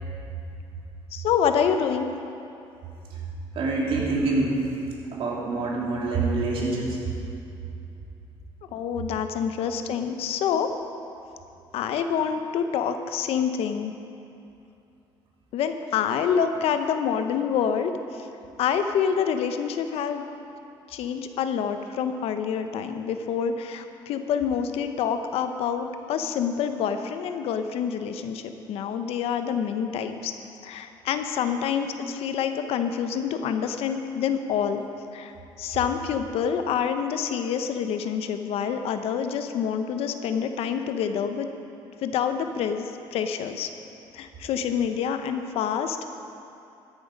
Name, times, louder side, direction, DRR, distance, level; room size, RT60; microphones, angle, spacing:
voice 1, 1.1-2.1 8.7-10.7 11.7-13.9 15.5-17.9 18.6-20.2 20.9-30.3 30.6-34.8 35.1-35.3 35.6-41.5 42.0-43.7 44.1-46.0, left 7 dB, 75° left, 8 dB, 0.8 m, -27 dB
voice 2, 3.5-4.5 5.1-7.0, right 3 dB, 65° right, -3 dB, 3.0 m, -26 dB
13.5 x 10.0 x 5.2 m, 2.7 s
cardioid pair, 95°, 10 cm